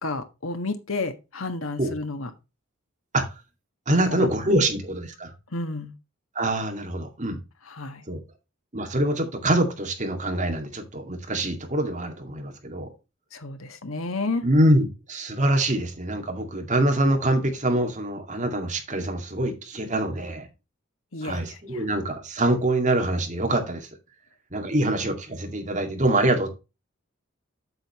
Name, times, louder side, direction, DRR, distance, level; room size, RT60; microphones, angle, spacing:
voice 1, 0.0-2.3 3.9-4.6 5.5-5.9 7.7-8.0 13.3-14.4 21.1-21.8, left 3 dB, 80° left, 9 dB, 1.5 m, -31 dB
voice 2, 3.9-5.3 6.3-7.4 8.1-8.2 8.7-12.9 14.4-20.5 21.2-23.9 24.5-26.5, right 1 dB, 35° right, 4 dB, 2.2 m, -24 dB
7.9 x 7.9 x 3.1 m, 0.28 s
head